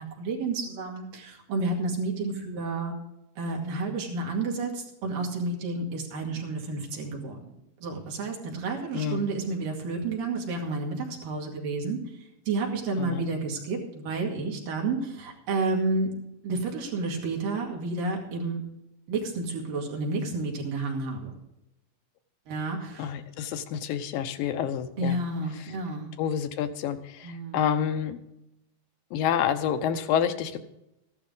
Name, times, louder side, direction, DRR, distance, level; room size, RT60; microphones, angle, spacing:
voice 1, 0.0-2.9 3.4-7.5 7.8-16.1 16.4-18.6 19.1-21.3 22.5-23.1 25.0-26.1 27.2-27.6, right 3 dB, 80° right, 0 dB, 4.0 m, -31 dB
voice 2, 8.9-9.3 13.0-13.3 23.0-25.2 26.2-28.2 29.1-30.6, left 8 dB, 90° left, 9 dB, 2.6 m, -28 dB
14.5 x 12.0 x 3.9 m, 0.88 s
omnidirectional pair, 3.9 m